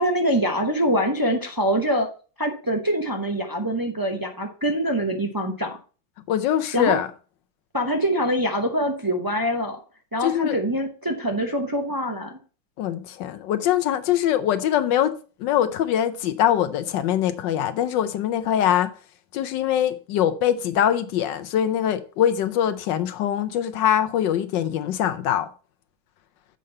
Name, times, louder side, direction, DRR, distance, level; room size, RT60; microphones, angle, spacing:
voice 1, 0.0-2.1 2.4-5.8 6.7-7.0 7.7-9.8 10.1-12.4, equal, 25° right, 0.5 m, -24 dB
voice 2, 6.3-7.1 10.2-10.6 12.8-15.1 15.4-18.9 19.3-25.5, left 10 dB, 80° left, 1.3 m, -23 dB
7.6 x 5.3 x 5.4 m
omnidirectional pair, 2.0 m